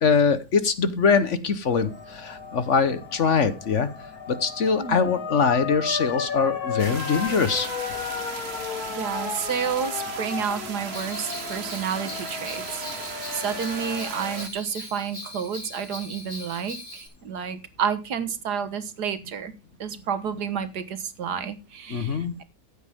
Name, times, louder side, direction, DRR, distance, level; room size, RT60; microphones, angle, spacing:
voice 1, 0.0-3.9 4.3-7.7 21.9-22.4, left 5 dB, 50° left, 12 dB, 1.3 m, -23 dB
sound 1, 1.6-14.4, left 5 dB, 65° left, 2.3 m, -34 dB
sound 2, 6.8-14.5, right 5 dB, 40° right, 1.3 m, -37 dB
voice 2, 8.9-19.5 19.8-22.4, right 7 dB, 80° right, 11 dB, 1.8 m, -30 dB
Bell, 10.9-17.1, left 1 dB, 30° left, 4.2 m, -41 dB
15.0 x 8.3 x 3.5 m, 0.26 s
omnidirectional pair, 1.7 m